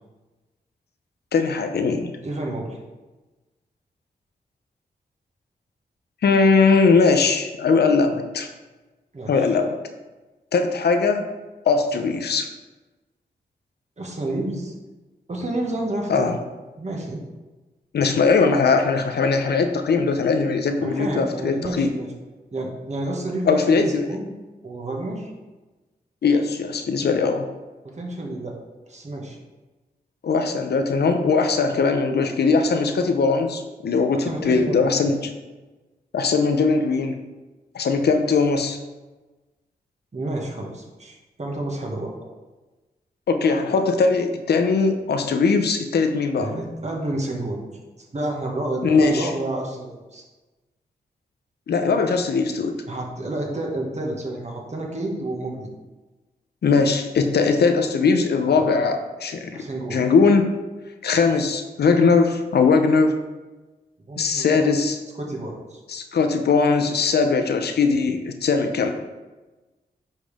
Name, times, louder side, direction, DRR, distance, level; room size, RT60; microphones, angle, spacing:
voice 1, 1.3-2.2 6.2-8.5 9.3-9.7 10.5-11.3 11.7-12.5 16.1-16.4 17.9-21.9 23.5-24.2 26.2-27.5 30.2-35.3 36.1-37.1 37.7-38.8 43.3-46.5 48.8-49.3 51.7-52.8 56.6-59.6 59.9-60.5 61.0-63.2 64.2-65.0 65.9-68.9, left 4 dB, 80° left, 6 dB, 0.8 m, -20 dB
voice 2, 2.2-2.8 9.1-9.5 14.0-14.7 15.3-16.3 16.8-17.2 20.8-22.1 22.5-24.3 24.6-25.3 27.8-28.5 28.9-29.4 34.2-35.1 40.1-42.1 46.4-47.6 48.0-50.2 52.9-55.7 58.5-58.7 59.5-60.0 64.1-64.9 65.2-65.8, right 1 dB, 45° right, -1 dB, 1.9 m, -30 dB
9.2 x 5.5 x 3.6 m, 1.2 s
cardioid pair, 60°, 17 cm